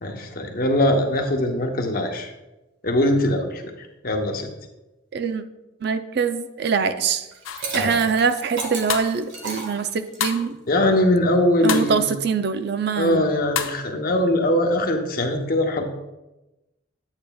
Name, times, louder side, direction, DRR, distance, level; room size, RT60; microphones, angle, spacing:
voice 1, 0.0-2.3 2.8-3.6 4.0-4.5 7.7-7.9 10.7-12.1 13.0-15.8, left 1 dB, 45° left, 3 dB, 0.9 m, -21 dB
voice 2, 5.1-5.4 5.8-7.3 7.7-10.6 11.6-13.2, right 5 dB, 55° right, 10 dB, 0.4 m, -23 dB
Liquid, 7.3-10.4, right 2 dB, 70° right, 1.6 m, -32 dB
sound 1, 7.4-7.7 8.9-9.2 10.2-10.5 11.7-12.0 13.6-13.8, left 8 dB, 90° left, 0.6 m, -27 dB
8.9 x 8.5 x 2.3 m, 1.0 s
head